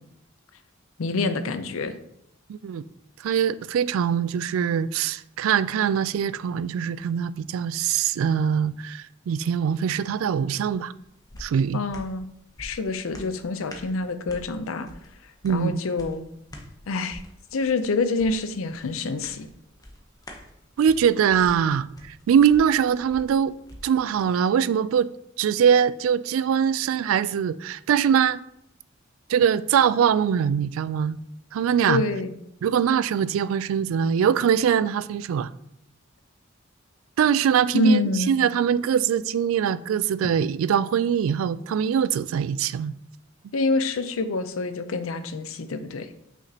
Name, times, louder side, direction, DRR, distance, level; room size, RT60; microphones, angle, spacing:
voice 1, 1.0-1.9 11.7-12.3 12.6-14.9 15.5-16.2 16.9-17.2 17.5-19.5 31.9-32.3 37.7-38.3 43.5-46.1, left 3 dB, 90° left, 0.6 m, -26 dB
voice 2, 2.5-2.8 3.2-10.9 11.4-11.8 15.4-15.8 20.8-23.6 23.8-25.1 25.4-28.4 29.3-31.2 31.5-32.0 32.6-35.5 37.2-42.9, right 8 dB, 85° right, 0.3 m, -22 dB
sound 1, 10.6-24.3 24.7-24.8, left 1 dB, 20° left, 0.8 m, -47 dB
5.9 x 5.8 x 2.8 m
head